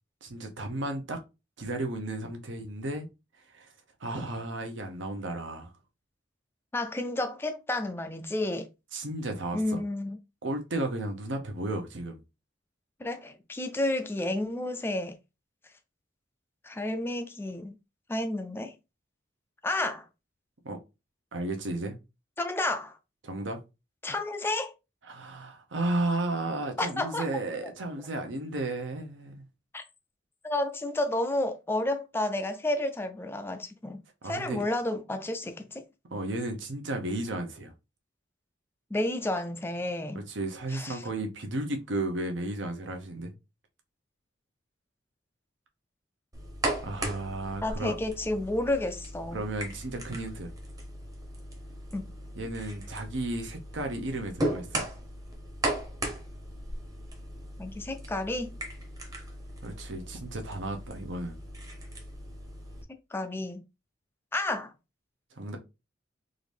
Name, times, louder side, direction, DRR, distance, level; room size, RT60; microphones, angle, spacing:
voice 1, 0.2-1.2 1.6-3.1 3.3-5.7 8.9-9.8 10.4-12.2 20.6-20.8 21.3-22.0 23.2-23.6 25.0-29.5 34.2-34.6 36.1-37.7 40.1-43.3 46.8-48.0 49.3-50.5 52.3-54.8 59.6-61.4 65.3-65.6, right 2 dB, 70° right, 0.8 m, -34 dB
voice 2, 6.7-8.7 9.5-10.2 13.0-15.2 16.6-17.8 18.1-18.7 19.6-20.0 22.4-23.0 24.0-24.7 26.8-27.3 29.7-29.8 30.4-35.8 38.9-40.2 40.7-41.0 47.6-49.4 51.9-52.1 57.6-58.6 63.1-63.6 64.3-64.7, left 1 dB, 10° left, 0.4 m, -31 dB
sound 1, 46.3-62.8, right 1 dB, 20° right, 0.9 m, -37 dB
3.8 x 2.6 x 3.3 m
head